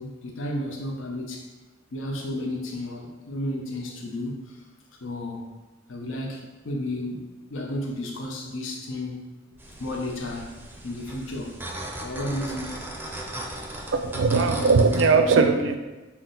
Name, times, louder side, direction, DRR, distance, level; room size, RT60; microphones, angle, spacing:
voice 1, 0.0-1.5 1.9-4.6 5.0-5.5 5.9-9.2 9.8-10.5 10.8-11.6 12.0-12.8, left 1 dB, 80° left, 0 dB, 0.7 m, -32 dB
sound 1, 9.6-15.1, right 1 dB, 10° right, 0.5 m, -37 dB
voice 2, 13.9-15.8, right 4 dB, 70° right, 6 dB, 0.4 m, -19 dB
5.8 x 2.1 x 3.8 m, 1.2 s
head